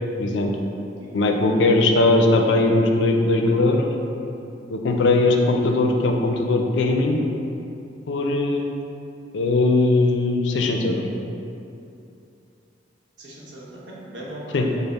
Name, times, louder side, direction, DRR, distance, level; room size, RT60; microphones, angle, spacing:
voice 1, 0.2-0.5 1.1-3.9 4.7-7.2 8.1-8.8 9.3-11.1 14.5-14.7, left 2 dB, 85° left, 3 dB, 0.4 m, -19 dB
voice 2, 13.2-14.8, right 1 dB, 85° right, -5 dB, 0.9 m, -39 dB
5.4 x 2.0 x 4.1 m, 2.7 s
head